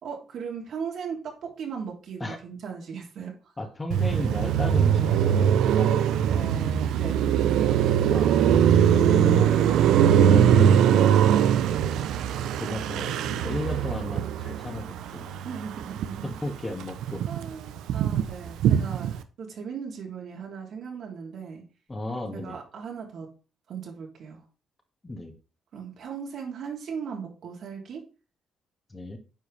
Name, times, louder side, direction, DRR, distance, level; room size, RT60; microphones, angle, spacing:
voice 1, 0.0-3.4 6.3-7.3 15.4-16.3 17.3-21.6 22.3-23.3 23.7-24.4 25.7-28.0, right 6 dB, 65° right, 0 dB, 2.9 m, -37 dB
voice 2, 3.6-5.9 8.1-8.5 9.2-11.1 12.6-15.3 16.2-17.3 21.9-22.6 25.0-25.3 28.9-29.2, left 2 dB, 20° left, 4 dB, 1.9 m, -35 dB
Car passing by, 3.9-16.4 16.7-19.2, right 9 dB, 85° right, 0.6 m, -21 dB
9.1 x 4.8 x 3.3 m, 0.36 s
cardioid pair, 90°, 0 cm